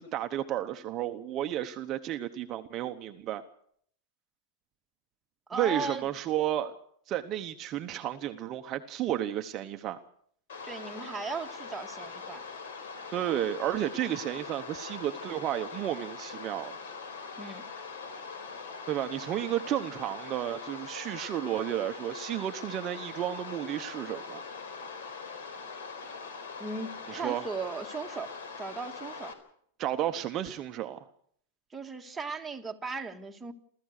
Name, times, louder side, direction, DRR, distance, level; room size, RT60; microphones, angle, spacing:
voice 1, 0.0-3.4 5.5-6.7 7.1-10.0 13.1-16.7 18.9-24.4 27.1-27.5 29.8-31.1, right 12 dB, 30° right, 1.0 m, -32 dB
voice 2, 5.5-6.1 10.6-12.4 17.4-17.6 26.6-29.3 31.7-33.5, right 4 dB, 10° right, 1.7 m, -37 dB
sound 1, 10.5-29.3, left 5 dB, 80° left, 4.1 m, -42 dB
29.5 x 14.0 x 6.6 m
supercardioid pair, 150°, 0 cm